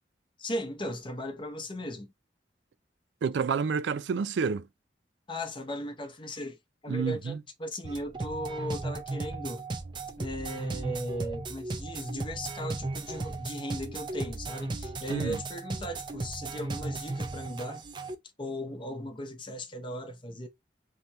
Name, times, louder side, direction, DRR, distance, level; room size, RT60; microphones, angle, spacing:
voice 1, 0.4-2.1 5.3-6.6 6.8-9.7 10.2-17.8 18.4-20.5, equal, 30° left, 0.7 m, -37 dB
voice 2, 3.2-4.7 6.9-7.4 15.1-15.4, right 5 dB, 85° right, 0.4 m, -29 dB
sound 1, 7.8-18.1, right 3 dB, 25° right, 0.5 m, -36 dB
3.3 x 2.9 x 4.0 m
head